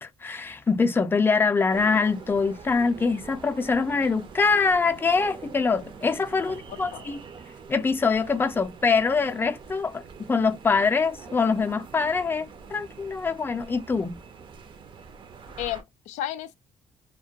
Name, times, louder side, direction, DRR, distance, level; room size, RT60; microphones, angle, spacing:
voice 1, 0.0-7.2 7.7-10.0 10.3-14.2, left 4 dB, 20° left, 0.4 m, -24 dB
sound 1, 1.7-15.8, right 5 dB, 45° right, 0.5 m, -44 dB
voice 2, 6.4-7.0 15.6-16.5, left 12 dB, 85° left, 0.4 m, -34 dB
2.2 x 2.1 x 2.7 m
cardioid pair, 90°, 12 cm